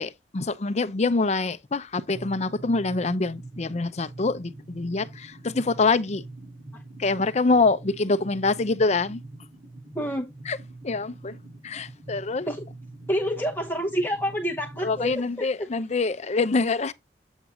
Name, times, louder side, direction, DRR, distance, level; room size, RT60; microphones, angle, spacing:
voice 1, 0.0-6.2 7.0-9.2 10.5-10.6 10.8-11.4 11.6-12.5 14.8-16.9, left 3 dB, 40° left, 0.6 m, -25 dB
sound 1, 2.1-15.1, right 2 dB, 70° right, 5.8 m, -44 dB
voice 2, 9.9-10.3 12.5-12.6 13.1-15.7, equal, 15° left, 0.9 m, -28 dB
8.2 x 4.6 x 3.7 m
head